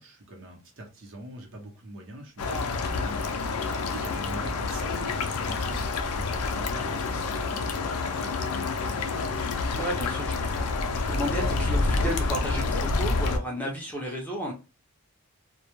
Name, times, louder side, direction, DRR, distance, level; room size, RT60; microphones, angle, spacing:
voice 1, 0.0-9.1, right 1 dB, 55° right, 1 dB, 0.7 m, -44 dB
sound 1, 2.4-13.4, left 3 dB, 75° left, 0.4 m, -28 dB
voice 2, 9.7-10.8 11.1-14.5, equal, 5° left, -2 dB, 0.5 m, -33 dB
2.1 x 2.1 x 2.9 m, 0.30 s
head